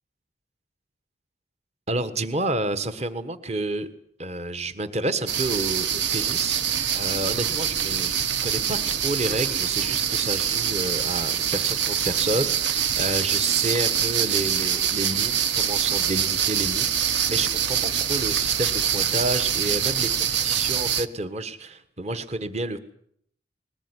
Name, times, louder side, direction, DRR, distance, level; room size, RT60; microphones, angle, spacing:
voice 1, 1.9-3.9 4.2-22.8, right 2 dB, 35° right, 11 dB, 1.4 m, -30 dB
sound 1, 5.3-21.1, right 8 dB, 60° right, 1.0 m, -25 dB
21.0 x 19.5 x 9.8 m, 0.67 s
head